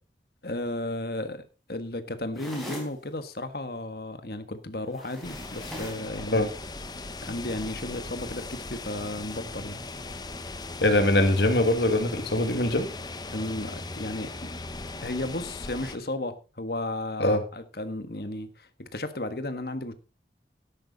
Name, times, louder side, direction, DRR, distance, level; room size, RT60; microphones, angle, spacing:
voice 1, 0.4-6.5 7.2-9.8 13.3-14.3 15.0-19.9, left 1 dB, 60° left, 1.5 m, -34 dB
sound 1, 2.3-3.0 4.9-6.1, left 1 dB, ahead, 4.5 m, -40 dB
sound 2, 5.2-16.0, left 3 dB, 25° left, 0.9 m, -39 dB
voice 2, 10.8-12.9 17.2-17.4, left 1 dB, 75° left, 2.1 m, -22 dB
13.0 x 10.5 x 4.1 m
head